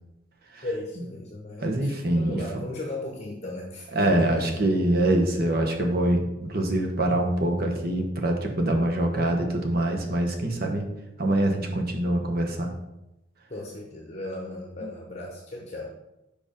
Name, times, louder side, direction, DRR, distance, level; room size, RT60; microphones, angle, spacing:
voice 1, 0.6-4.7 13.5-15.9, left 1 dB, 35° left, 0 dB, 0.8 m, -36 dB
voice 2, 1.6-2.4 3.9-10.9 11.2-12.7 14.8-14.9, right 1 dB, 45° right, 2 dB, 1.0 m, -24 dB
5.1 x 5.0 x 5.0 m, 0.91 s
head